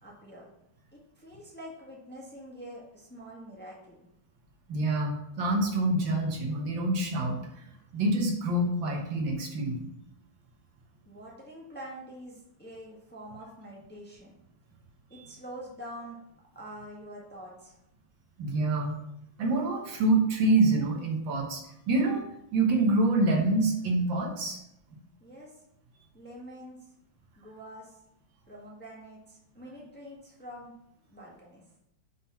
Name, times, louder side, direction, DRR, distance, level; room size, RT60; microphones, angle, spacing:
voice 1, 0.0-0.5 0.9-4.0 11.0-14.4 15.1-16.2 16.5-17.8 25.2-25.5 26.1-26.8 27.4-28.0 28.5-30.7 31.1-31.6, equal, 5° left, -5 dB, 1.3 m, -45 dB
voice 2, 4.7-7.4 7.9-9.8 15.1-15.3 18.4-18.9 19.4-22.3 22.5-24.6, right 2 dB, 75° right, 1 dB, 1.8 m, -26 dB
5.8 x 3.7 x 5.5 m, 0.79 s
omnidirectional pair, 2.2 m